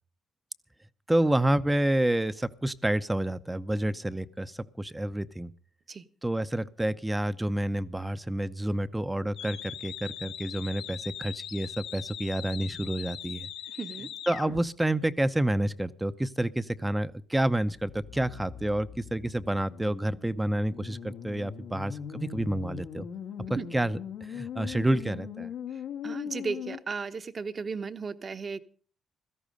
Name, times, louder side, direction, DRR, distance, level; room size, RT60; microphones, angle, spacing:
voice 1, 1.1-5.5 6.2-13.5 14.3-23.1 23.7-24.0 24.3-25.5, right 1 dB, 10° right, 13 dB, 0.7 m, -29 dB
sound 1, 9.4-14.6 17.7-26.8, left 8 dB, 85° left, 1.7 m, -40 dB
voice 2, 13.7-14.1 23.6-23.7 26.0-28.6, right 5 dB, 40° right, 12 dB, 1.1 m, -35 dB
16.5 x 13.5 x 5.2 m, 0.42 s
cardioid pair, 90°, 0 cm